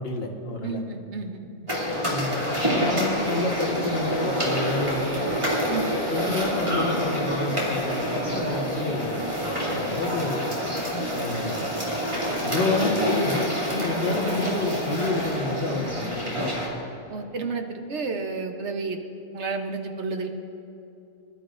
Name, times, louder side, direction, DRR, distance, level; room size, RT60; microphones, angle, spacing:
voice 1, 0.0-0.8 2.1-5.4 6.1-9.3 9.7-10.4 11.1-11.6 12.4-16.5, left 2 dB, 45° left, 0 dB, 1.6 m, -29 dB
voice 2, 0.6-1.5 5.7-6.0 17.1-19.0 19.3-20.3, right 4 dB, 55° right, 4 dB, 1.2 m, -31 dB
sound 1, 1.7-16.7, equal, 20° right, 2.8 m, -27 dB
22.5 x 12.0 x 2.6 m, 2.8 s
omnidirectional pair, 1.5 m